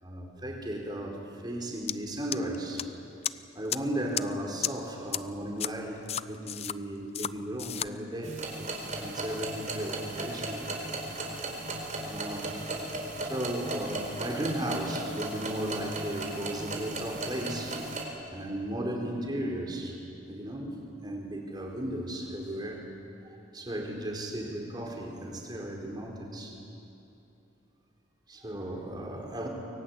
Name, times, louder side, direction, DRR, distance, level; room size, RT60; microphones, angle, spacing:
voice 1, 0.0-2.9 3.5-8.4 9.0-10.6 12.0-12.8 13.2-17.8 18.3-20.8 21.0-22.8 23.5-26.5 28.3-29.5, right 1 dB, 25° right, 0 dB, 4.5 m, -35 dB
sound 1, 1.9-2.0 2.3-2.8 3.2-3.3 3.7-3.8 4.1-4.2 4.6-4.7 5.1-5.2 5.6-5.7 6.1-6.7 7.1-7.3 7.6-7.9, left 10 dB, 35° left, 0.5 m, -31 dB
sound 2, 8.2-18.0, right 2 dB, 40° right, 4.2 m, -36 dB
24.0 x 23.0 x 9.6 m, 2.8 s
head